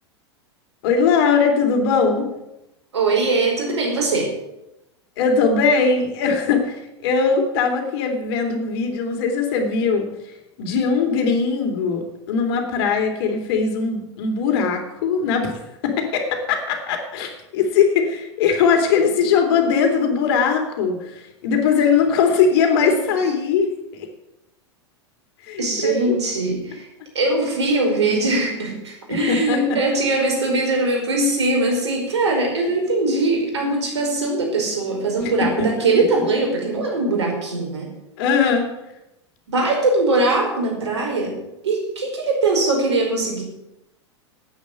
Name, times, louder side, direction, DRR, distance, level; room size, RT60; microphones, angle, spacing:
voice 1, 0.8-2.3 5.2-10.1 10.6-23.7 23.9-24.1 25.5-26.1 29.3-29.6 35.6-35.7 38.2-38.6, left 5 dB, 60° left, 4 dB, 3.3 m, -20 dB
voice 2, 2.9-4.3 22.8-23.1 25.6-26.9 27.2-37.9 39.5-41.4 41.6-43.4, right 2 dB, 75° right, 0 dB, 5.2 m, -21 dB
10.5 x 9.3 x 8.5 m, 0.91 s
hypercardioid pair, 95°, 15 cm